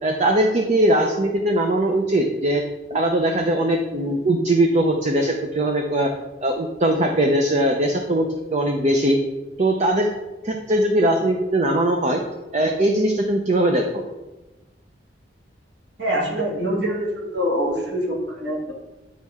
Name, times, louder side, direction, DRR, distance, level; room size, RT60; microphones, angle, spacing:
voice 1, 0.0-2.6 2.9-6.1 6.4-9.2 9.6-10.1 10.4-12.2 12.5-14.0, right 1 dB, 40° right, 3 dB, 0.5 m, -20 dB
voice 2, 16.0-18.7, equal, 65° right, -4 dB, 2.0 m, -24 dB
9.3 x 4.2 x 3.5 m, 1.1 s
head